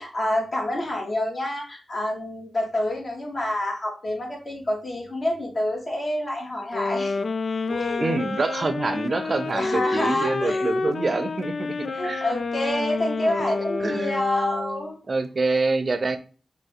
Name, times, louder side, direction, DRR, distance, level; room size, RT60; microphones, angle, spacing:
voice 1, 0.0-7.2 7.7-8.0 9.6-10.7 11.9-15.0, left 1 dB, 50° left, -2 dB, 2.1 m, -28 dB
sound 1, 6.7-14.9, left 4 dB, 65° left, 0.4 m, -29 dB
voice 2, 8.0-12.2 13.8-14.2 15.1-16.2, right 3 dB, 50° right, 10 dB, 0.6 m, -26 dB
5.2 x 2.6 x 3.8 m, 0.36 s
cardioid pair, 60°, 0 cm